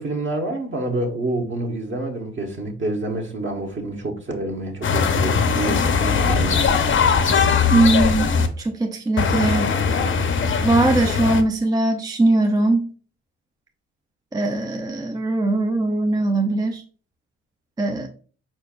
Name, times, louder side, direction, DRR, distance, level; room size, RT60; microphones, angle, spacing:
voice 1, 0.0-6.7, right 2 dB, 40° right, 1.1 m, -28 dB
sound 1, 4.8-8.5 9.2-11.4, left 5 dB, 40° left, 0.6 m, -20 dB
voice 2, 7.7-8.3 8.6-9.8 10.6-12.9 14.3-16.8 17.8-18.1, right 2 dB, 15° right, 0.4 m, -20 dB
4.5 x 4.5 x 2.4 m
cardioid pair, 90°, 30 cm